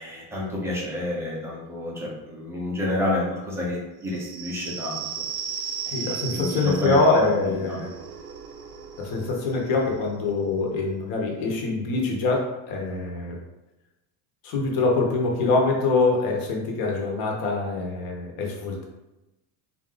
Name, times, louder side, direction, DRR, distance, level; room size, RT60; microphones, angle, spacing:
voice 1, 0.0-5.0 5.9-7.0 7.4-7.8, left 1 dB, 5° right, -4 dB, 0.3 m, -29 dB
sound 1, 4.0-11.3, right 7 dB, 55° right, 0.6 m, -37 dB
voice 2, 5.9-7.9 9.0-13.4 14.4-18.8, left 3 dB, 50° left, 0 dB, 0.9 m, -24 dB
4.0 x 2.4 x 3.8 m, 1.0 s
cardioid pair, 160°, 47 cm